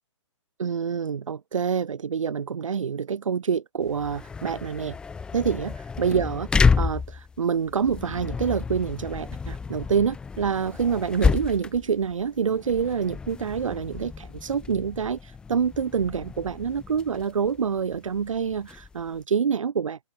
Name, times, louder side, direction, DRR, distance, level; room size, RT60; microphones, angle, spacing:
voice 1, 0.6-5.0 5.3-5.7 6.0-20.0, right 6 dB, 80° right, 2.1 m, -27 dB
sound 1, 3.8-19.2, left 5 dB, 5° left, 0.5 m, -30 dB
open air
hypercardioid pair, 155°, 16 cm